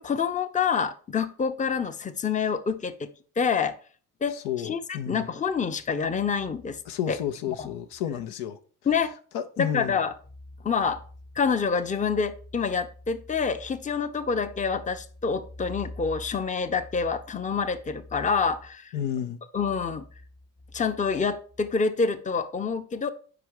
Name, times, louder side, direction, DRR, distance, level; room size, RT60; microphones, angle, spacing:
voice 1, 0.0-3.1 3.4-3.8 4.2-4.3 4.6-6.8 7.1-7.2 7.6-7.7 8.9-9.1 9.6-10.1 10.6-11.0 11.4-18.9 19.5-20.0 20.7-23.1, left 5 dB, 20° left, 0.6 m, -27 dB
voice 2, 4.3-5.3 6.9-8.6 9.3-10.0 18.9-19.4, left 10 dB, 75° left, 0.7 m, -31 dB
4.9 x 4.7 x 4.7 m
hypercardioid pair, 55°, 41 cm